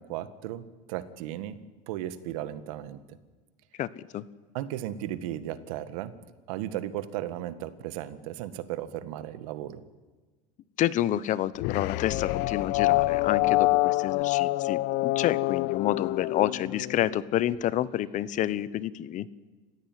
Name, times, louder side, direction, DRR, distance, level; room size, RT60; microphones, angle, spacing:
voice 1, 0.0-3.0 4.5-6.2 6.5-9.8, right 12 dB, 80° right, 12 dB, 1.7 m, -35 dB
voice 2, 3.8-4.2 10.8-19.3, left 12 dB, 45° left, 17 dB, 1.0 m, -29 dB
sound 1, 11.6-17.1, left 20 dB, 65° left, 0.7 m, -26 dB
28.5 x 15.5 x 9.3 m, 1.3 s
supercardioid pair, 110°, 18 cm